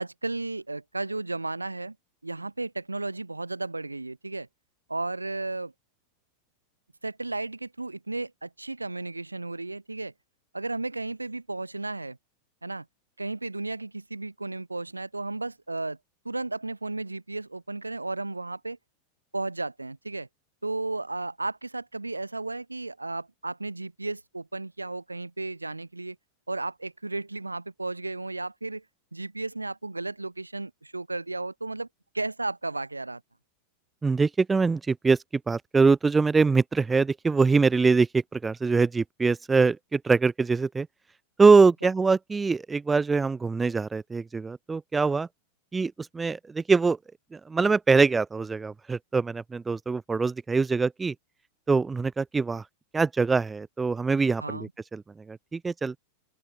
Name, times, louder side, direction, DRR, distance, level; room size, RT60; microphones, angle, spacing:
voice 1, 0.0-2.0 2.2-4.5 4.9-5.7 7.0-10.1 10.5-12.2 12.6-12.9 13.2-16.0 16.3-18.8 19.3-20.3 20.6-26.2 26.5-28.8 29.1-31.9 32.1-33.2 41.8-41.9 54.4-54.7, right 2 dB, 80° right, 3.5 m, -34 dB
voice 2, 34.0-40.9 41.4-45.3 45.7-47.0 47.3-51.1 51.7-52.6 52.9-56.0, right 4 dB, 15° right, 0.8 m, -23 dB
open air
figure-of-eight pair, 90°, 0 cm